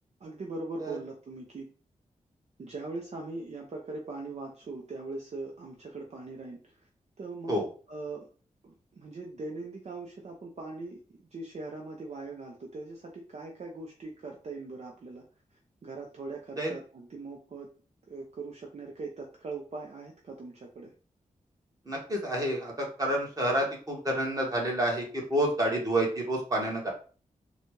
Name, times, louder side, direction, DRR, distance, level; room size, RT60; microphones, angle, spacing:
voice 1, 0.2-1.7 2.6-6.9 7.2-7.6 7.9-8.3 8.6-15.2 15.8-17.7 18.1-20.9, right 3 dB, 55° right, 0 dB, 0.7 m, -41 dB
voice 2, 21.9-26.9, right 1 dB, 25° right, -1 dB, 1.5 m, -29 dB
4.0 x 2.3 x 3.1 m, 0.39 s
cardioid pair, 75°, 13 cm